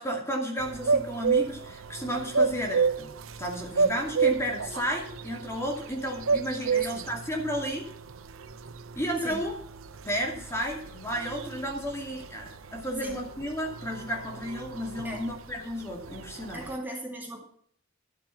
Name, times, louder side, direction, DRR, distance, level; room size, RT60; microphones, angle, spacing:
voice 1, 0.0-3.1 3.4-7.9 9.0-9.5 10.0-16.6, equal, 15° left, 0 dB, 2.4 m, -32 dB
sound 1, 0.6-16.8, right 5 dB, 80° right, 0.8 m, -31 dB
voice 2, 6.7-7.1 9.2-9.5 13.0-13.2 15.0-15.3 16.5-17.4, right 1 dB, 10° right, -1 dB, 2.3 m, -38 dB
12.0 x 7.5 x 5.8 m, 0.64 s
head